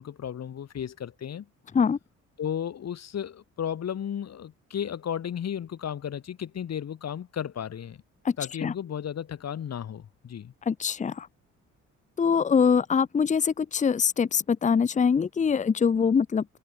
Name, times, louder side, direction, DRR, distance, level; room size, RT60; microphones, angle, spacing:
voice 1, 0.0-1.5 2.4-8.0 8.4-10.5, left 9 dB, 60° left, 4.8 m, -34 dB
voice 2, 10.7-11.3 12.2-16.4, left 6 dB, 25° left, 0.7 m, -23 dB
cardioid pair, 90°, 30 cm